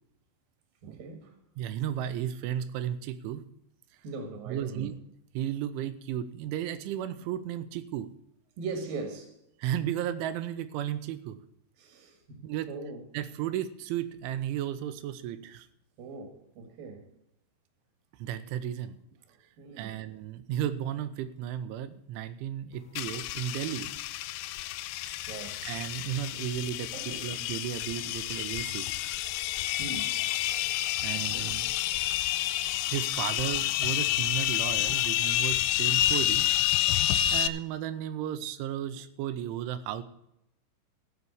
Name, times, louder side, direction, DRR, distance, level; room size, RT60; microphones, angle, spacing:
voice 1, 0.8-1.3 4.0-4.9 8.6-9.3 11.8-12.4 12.7-13.0 16.0-17.1 19.6-20.0 25.1-25.6 26.9-27.3 29.8-30.3 31.1-31.5, right 4 dB, 60° right, 2.6 m, -40 dB
voice 2, 1.6-3.4 4.5-5.0 5.3-8.1 9.6-11.4 12.4-12.7 13.1-15.7 18.2-19.0 19.8-23.9 25.6-28.9 31.0-31.7 32.9-36.5 37.0-40.0, right 10 dB, 80° right, 2.9 m, -34 dB
sound 1, 23.0-37.5, left 14 dB, 85° left, 3.2 m, -29 dB
15.5 x 5.6 x 7.9 m
omnidirectional pair, 5.9 m